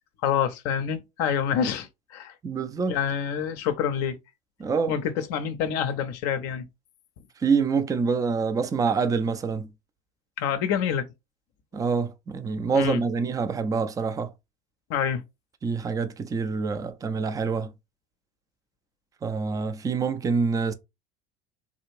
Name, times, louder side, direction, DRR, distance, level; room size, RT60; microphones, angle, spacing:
voice 1, 0.2-2.3 2.9-4.2 4.9-6.7 10.4-11.1 12.7-13.0 14.9-15.2, left 8 dB, 45° left, 0.6 m, -27 dB
voice 2, 2.4-3.0 4.6-4.9 7.4-9.7 11.7-14.3 15.6-17.7 19.2-20.7, right 5 dB, 10° right, 0.3 m, -26 dB
3.8 x 2.4 x 3.0 m
figure-of-eight pair, 70°, 34 cm